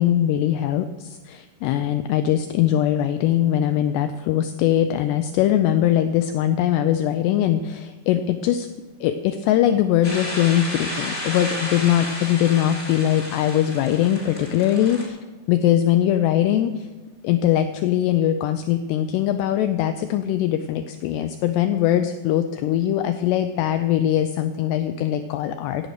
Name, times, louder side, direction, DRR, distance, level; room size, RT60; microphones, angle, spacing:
voice 1, 0.0-8.7 9.0-15.2 15.5-16.9 17.2-25.9, left 11 dB, 80° left, 9 dB, 2.5 m, -21 dB
sound 1, 10.0-15.0, left 1 dB, 15° left, 2.8 m, -32 dB
16.5 x 9.4 x 6.4 m, 1.2 s
omnidirectional pair, 5.4 m